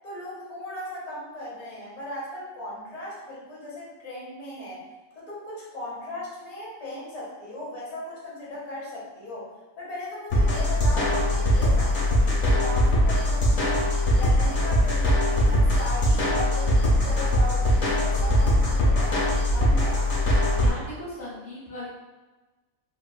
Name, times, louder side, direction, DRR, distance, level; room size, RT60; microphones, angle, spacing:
voice 1, 0.0-4.8 5.1-9.5 9.8-13.8 14.2-20.1, left 1 dB, 35° left, -7 dB, 1.0 m, -37 dB
sound 1, 10.3-20.7, left 1 dB, 80° left, 1.3 m, -21 dB
voice 2, 20.6-21.9, left 1 dB, 60° left, -8 dB, 1.1 m, -37 dB
3.4 x 2.3 x 2.3 m, 1.2 s
omnidirectional pair, 1.4 m